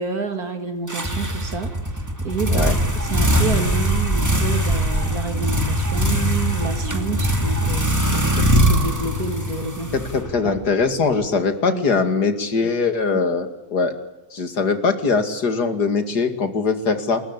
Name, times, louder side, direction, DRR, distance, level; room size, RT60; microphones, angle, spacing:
voice 1, 0.0-1.7 2.2-2.7 3.0-10.0 10.4-10.6 11.7-11.8, right 4 dB, 70° right, 6 dB, 3.0 m, -28 dB
sound 1, 0.9-10.7, equal, 10° right, 2.5 m, -21 dB
voice 2, 9.9-13.9 14.3-17.2, left 4 dB, 85° left, 8 dB, 2.9 m, -21 dB
28.5 x 14.0 x 9.9 m, 0.97 s
omnidirectional pair, 1.7 m